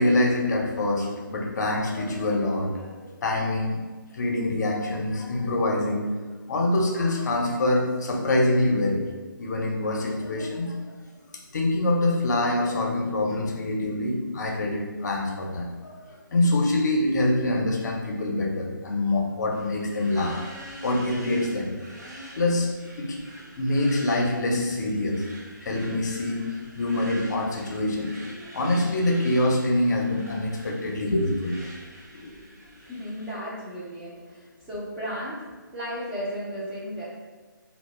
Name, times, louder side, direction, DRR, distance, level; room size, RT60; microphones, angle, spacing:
voice 1, 0.0-3.8 4.1-6.1 6.5-9.0 9.4-10.7 11.5-20.4 20.8-21.7 22.4-22.7 23.0-23.2 23.6-25.2 25.6-26.4 26.7-31.7 32.1-32.4, left 1 dB, 55° left, 0 dB, 0.5 m, -25 dB
sound 1, 19.5-33.3, right 1 dB, 50° right, 0.6 m, -45 dB
voice 2, 32.8-35.5 35.7-37.0, equal, 5° right, -8 dB, 0.3 m, -34 dB
2.1 x 2.0 x 3.0 m, 1.3 s
figure-of-eight pair, 150°, 11 cm